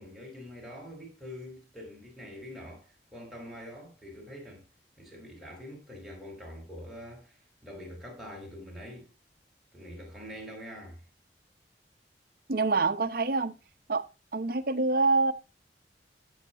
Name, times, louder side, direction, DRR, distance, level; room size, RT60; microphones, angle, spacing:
voice 1, 0.0-4.6 5.0-9.1 9.7-11.0, equal, ahead, 5.1 m, -45 dB
voice 2, 12.5-13.5 13.9-14.0 14.3-15.3, right 3 dB, 55° right, 1.0 m, -26 dB
15.5 x 6.7 x 2.6 m
head